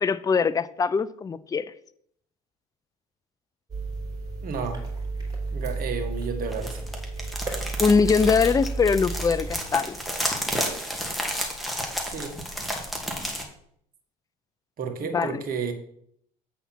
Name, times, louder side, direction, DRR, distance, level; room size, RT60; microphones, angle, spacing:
voice 1, 0.0-1.7 7.8-10.0 15.1-15.4, left 5 dB, 20° left, 0.4 m, -22 dB
sound 1, 3.7-9.6, right 3 dB, 20° right, 3.6 m, -32 dB
voice 2, 4.4-4.8 5.5-6.8 12.0-12.4 14.8-15.7, right 5 dB, 50° right, 1.6 m, -31 dB
sound 2, 6.5-13.4, equal, ahead, 2.0 m, -31 dB
8.2 x 4.2 x 6.0 m
hypercardioid pair, 70°, 19 cm